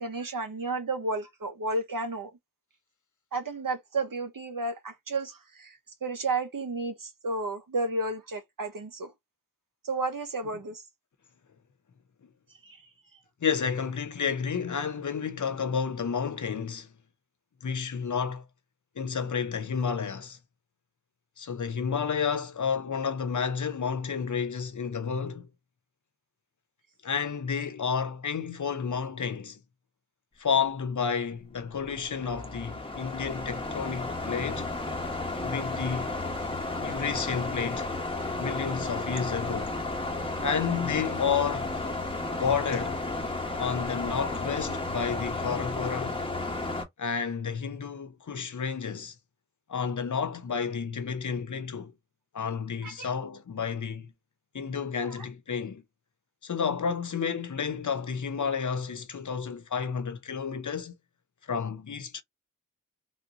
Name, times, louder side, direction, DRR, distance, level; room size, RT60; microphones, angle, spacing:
voice 1, 0.0-2.3 3.3-9.1 9.8-10.8 12.6-12.9 52.8-53.1 55.0-55.3, right 2 dB, 80° right, 1.0 m, -32 dB
voice 2, 13.4-16.9 17.6-18.4 19.0-20.4 21.4-25.5 27.0-29.6 30.4-34.7 35.4-36.1 36.8-37.9 38.4-39.8 40.4-41.8 42.4-43.0 43.6-46.2 47.0-49.1 49.7-51.9 52.3-54.1 54.5-55.8 56.4-60.9 61.5-62.2, left 6 dB, 65° left, 0.6 m, -31 dB
sound 1, 31.8-46.8, left 2 dB, 15° left, 1.1 m, -33 dB
3.4 x 2.6 x 2.7 m
wide cardioid pair, 55°, 33 cm